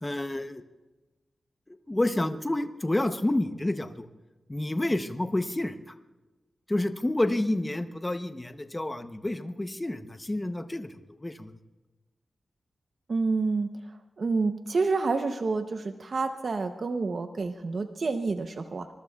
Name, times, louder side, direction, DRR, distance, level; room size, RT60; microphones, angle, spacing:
voice 1, 0.0-0.6 1.7-4.1 4.5-5.9 6.7-10.9 11.2-11.6, left 1 dB, 15° left, 8 dB, 0.7 m, -29 dB
voice 2, 13.1-13.7 14.2-18.9, right 4 dB, 50° right, 7 dB, 0.7 m, -28 dB
24.5 x 22.0 x 2.3 m, 1.2 s
wide cardioid pair, 165°, 0 cm